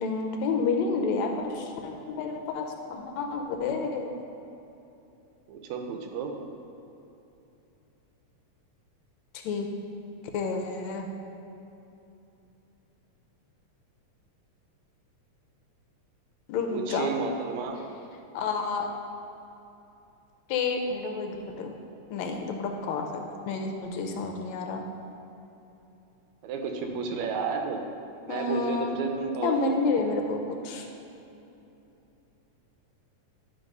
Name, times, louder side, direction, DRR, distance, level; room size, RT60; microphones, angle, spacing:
voice 1, 0.0-4.1 9.4-9.7 10.3-11.1 16.5-17.1 18.3-18.9 20.5-21.7 22.1-24.8 28.3-29.0 29.4-30.9, left 4 dB, 80° left, 3 dB, 1.9 m, -29 dB
voice 2, 5.5-6.4 16.7-17.8 26.4-27.8 28.2-29.8, right 5 dB, 80° right, 4 dB, 1.9 m, -32 dB
10.5 x 3.8 x 5.3 m, 2.9 s
omnidirectional pair, 3.3 m